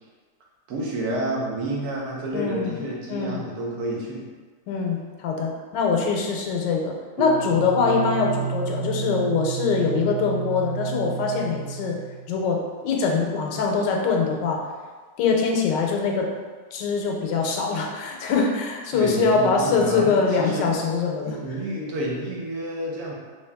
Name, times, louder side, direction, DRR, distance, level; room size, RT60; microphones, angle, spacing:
voice 1, 0.7-4.3 18.9-20.7 21.2-23.1, right 1 dB, 65° right, -3 dB, 1.1 m, -29 dB
voice 2, 2.3-2.7 3.1-3.4 4.7-12.0 12.3-14.6 15.2-16.3 16.7-21.4, left 4 dB, 80° left, 0 dB, 1.2 m, -23 dB
sound 1, 7.2-12.4, right 6 dB, 80° right, 0.7 m, -31 dB
3.3 x 2.8 x 3.4 m, 1.4 s
omnidirectional pair, 1.9 m